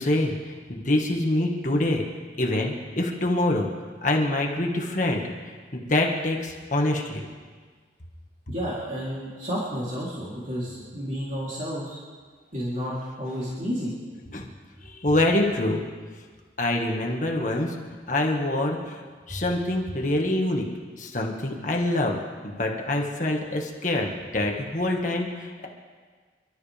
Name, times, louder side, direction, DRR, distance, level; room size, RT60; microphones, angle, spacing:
voice 1, 0.0-2.0 2.4-3.7 4.0-5.2 5.7-7.2 14.3-14.5 14.8-15.8 16.6-17.8 18.1-20.7 21.0-22.2 22.4-25.7, left 1 dB, 40° left, 0 dB, 1.8 m, -25 dB
voice 2, 8.5-12.0 12.5-13.9, equal, 40° right, -8 dB, 3.5 m, -31 dB
29.0 x 13.0 x 3.6 m, 1.6 s
head